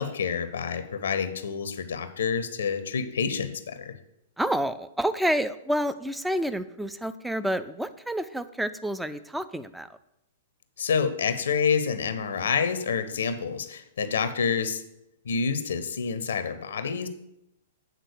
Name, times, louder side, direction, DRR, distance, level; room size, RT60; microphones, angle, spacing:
voice 1, 0.0-3.9 10.8-14.8 15.2-17.1, left 6 dB, 65° left, 10 dB, 0.6 m, -28 dB
voice 2, 4.4-10.0, equal, 5° right, 12 dB, 0.4 m, -29 dB
8.0 x 3.8 x 6.6 m, 0.84 s
figure-of-eight pair, 105°, 0 cm